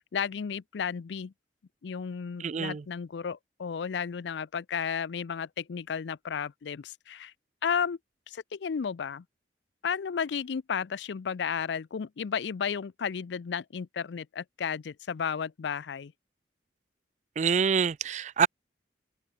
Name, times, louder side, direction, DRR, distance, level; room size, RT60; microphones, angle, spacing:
voice 1, 0.1-1.3 1.8-7.3 7.6-8.0 8.3-9.2 9.8-16.1, left 7 dB, 80° left, 0.4 m, -33 dB
voice 2, 2.4-2.8 17.4-18.5, right 6 dB, 40° right, 0.4 m, -26 dB
open air
head